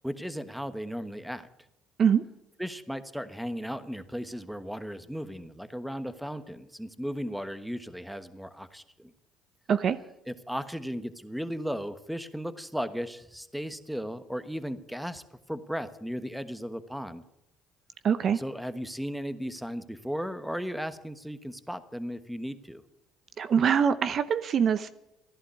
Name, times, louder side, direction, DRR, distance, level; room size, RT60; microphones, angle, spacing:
voice 1, 0.0-1.5 2.6-9.1 10.3-17.2 18.3-22.8, equal, ahead, 12 dB, 1.3 m, -36 dB
voice 2, 18.0-18.4 23.4-24.9, right 7 dB, 50° right, 13 dB, 0.8 m, -24 dB
15.0 x 11.0 x 8.3 m, 0.87 s
supercardioid pair, 80°, 0 cm